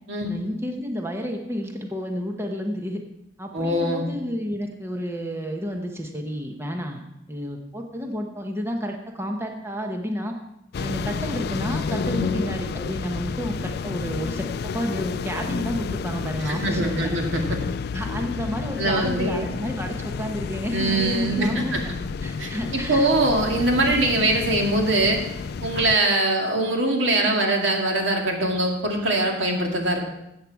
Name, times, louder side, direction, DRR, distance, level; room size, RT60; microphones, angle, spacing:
voice 1, 0.3-3.0 3.4-10.3 10.8-17.2 17.9-21.9 22.2-23.1 23.7-23.9, equal, 15° right, 3 dB, 1.0 m, -31 dB
voice 2, 3.5-4.0 12.1-12.4 16.4-17.6 18.8-19.5 20.7-21.8 22.4-25.2 25.6-30.0, right 2 dB, 80° right, 1 dB, 2.2 m, -23 dB
sound 1, 10.7-26.0, left 5 dB, 60° left, 0.4 m, -30 dB
13.5 x 8.5 x 4.7 m, 0.85 s
head